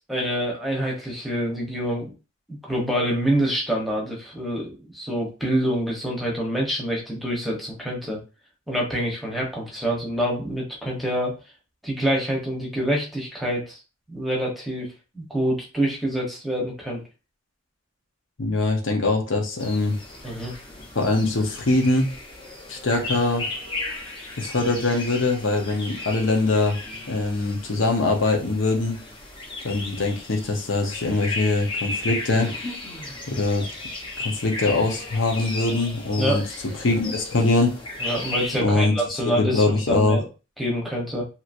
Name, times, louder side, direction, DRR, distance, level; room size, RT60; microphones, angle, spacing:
voice 1, 0.0-2.1 2.5-8.2 8.7-11.3 11.8-13.8 14.1-14.9 15.1-17.0 20.2-20.5 36.2-36.4 38.0-40.2 40.6-41.2, equal, ahead, -3 dB, 0.9 m, -26 dB
voice 2, 18.4-20.0 20.9-22.1 22.7-23.4 24.4-26.8 27.1-29.0 29.6-32.5 33.3-33.6 34.2-36.4 36.8-37.7 38.6-40.2, left 2 dB, 75° left, 2 dB, 0.8 m, -22 dB
sound 1, 19.6-38.6, left 2 dB, 25° left, 0.8 m, -35 dB
2.9 x 2.8 x 2.5 m, 0.31 s
head